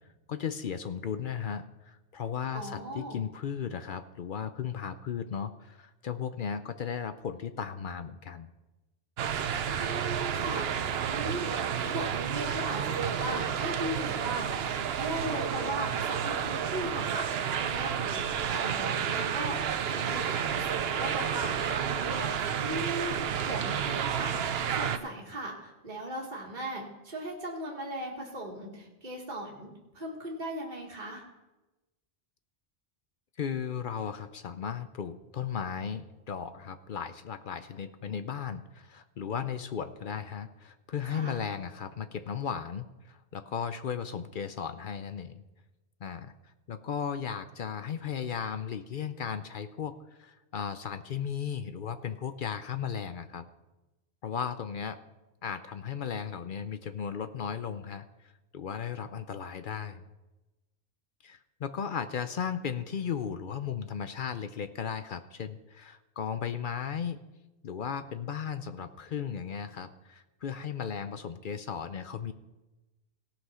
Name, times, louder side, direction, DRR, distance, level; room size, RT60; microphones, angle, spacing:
voice 1, 0.3-8.5 33.4-45.4 46.0-46.3 46.7-53.5 54.2-55.0 55.4-58.0 58.5-60.0 61.2-67.2 67.6-72.3, left 7 dB, 55° left, 11 dB, 0.7 m, -36 dB
voice 2, 2.5-3.2 9.7-10.8 11.0-11.5 11.8-14.6 14.9-23.2 23.4-24.4 24.7-31.2 41.0-41.4, right 1 dB, 45° right, -3 dB, 1.9 m, -38 dB
sound 1, 9.2-25.0, right 8 dB, 70° right, 0.9 m, -31 dB
17.5 x 5.9 x 5.6 m, 1.1 s
omnidirectional pair, 1.1 m